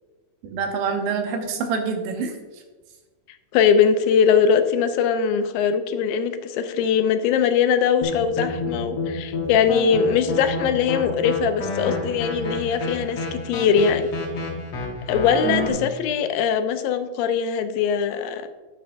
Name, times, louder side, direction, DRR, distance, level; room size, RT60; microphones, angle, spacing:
voice 1, 0.4-2.3 15.4-15.7, right 5 dB, 80° right, 4 dB, 2.8 m, -26 dB
voice 2, 3.5-14.1 15.1-18.5, left 7 dB, 85° left, 9 dB, 2.4 m, -21 dB
sound 1, 8.0-15.7, left 3 dB, 55° left, 1.6 m, -29 dB
11.0 x 7.8 x 2.6 m, 1.3 s
omnidirectional pair, 4.2 m